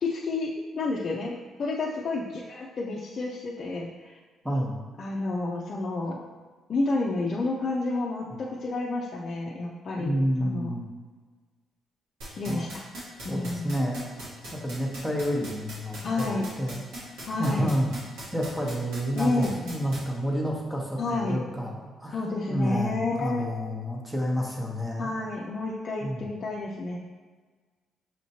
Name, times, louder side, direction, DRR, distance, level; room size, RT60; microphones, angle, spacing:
voice 1, 0.0-1.3 1.6-4.2 5.0-6.2 6.7-10.7 12.4-12.9 13.2-13.8 16.0-16.5 17.3-17.7 19.2-19.7 21.0-21.4 22.1-23.4 25.0-27.0, left 3 dB, 50° left, -3 dB, 0.5 m, -30 dB
voice 2, 4.4-4.8 10.0-10.8 12.4-12.6 13.3-14.0 14.6-16.8 17.4-17.9 18.3-22.2 22.5-25.1 26.0-26.3, equal, 5° right, -1 dB, 1.0 m, -29 dB
sound 1, 12.2-20.0, right 1 dB, 90° right, 1.4 m, -39 dB
6.4 x 3.0 x 2.8 m, 1.4 s
cardioid pair, 90°, 0 cm